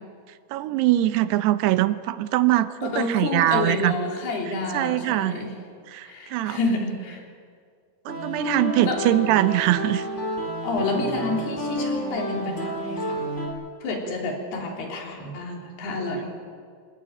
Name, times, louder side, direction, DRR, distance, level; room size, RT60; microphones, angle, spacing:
voice 1, 0.5-4.0 4.7-5.4 5.9-6.6 8.1-10.1, right 14 dB, 85° right, 13 dB, 2.9 m, -22 dB
voice 2, 2.8-5.5 6.0-7.2 8.9-9.0 10.6-13.3 13.8-16.3, left 2 dB, 75° left, 1 dB, 5.6 m, -29 dB
sound 1, 8.1-13.5, equal, 15° left, 4.5 m, -30 dB
24.5 x 19.0 x 9.2 m, 2.1 s
omnidirectional pair, 4.6 m